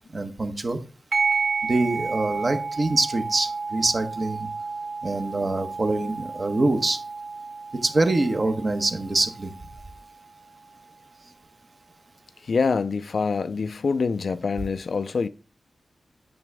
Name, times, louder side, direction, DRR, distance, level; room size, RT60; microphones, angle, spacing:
voice 1, 0.1-0.8 1.7-4.5 5.0-7.0 7.8-9.5, right 2 dB, 40° right, 1.1 m, -24 dB
sound 1, 1.1-10.1, right 4 dB, 60° right, 2.4 m, -31 dB
voice 2, 12.4-15.3, left 4 dB, 65° left, 0.4 m, -25 dB
9.1 x 6.0 x 3.4 m
wide cardioid pair, 125°, 0 cm